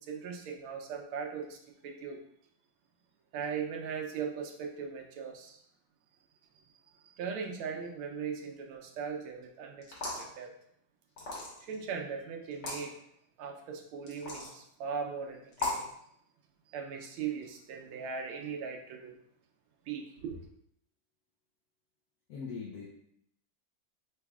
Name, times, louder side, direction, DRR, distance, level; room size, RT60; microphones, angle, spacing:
voice 1, 0.0-2.2 3.3-5.6 7.2-9.8 10.2-10.5 11.6-12.9 13.4-15.9 16.7-19.1 19.9-20.4, right 6 dB, 80° right, 2 dB, 1.5 m, -39 dB
sound 1, 9.8-10.3 11.2-11.7 12.5-12.8 14.1-14.5 15.5-15.9, left 2 dB, 55° left, 1.7 m, -36 dB
voice 2, 22.3-22.9, left 5 dB, 85° left, -3 dB, 0.8 m, -40 dB
4.8 x 4.1 x 2.3 m, 0.71 s
omnidirectional pair, 2.4 m